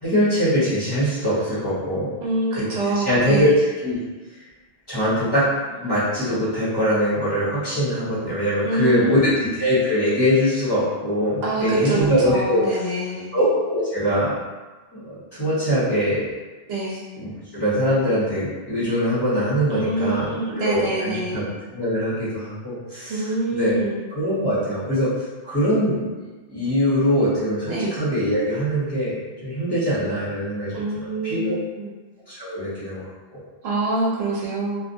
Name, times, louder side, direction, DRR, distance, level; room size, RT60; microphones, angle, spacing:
voice 1, 0.0-2.1 2.5-4.0 4.9-5.5 5.8-12.6 13.3-14.3 14.9-16.3 17.2-20.3 20.5-21.4 21.7-23.8 24.1-25.1 25.4-26.0 26.5-31.5 32.3-33.1, equal, 25° left, -12 dB, 1.0 m, -22 dB
voice 2, 2.2-3.5 8.6-9.4 11.4-13.3 16.7-17.0 19.7-21.5 23.1-24.0 27.7-27.9 30.7-31.9 33.6-34.8, right 2 dB, 70° right, -4 dB, 0.8 m, -25 dB
2.4 x 2.2 x 2.6 m, 1.2 s
omnidirectional pair, 1.1 m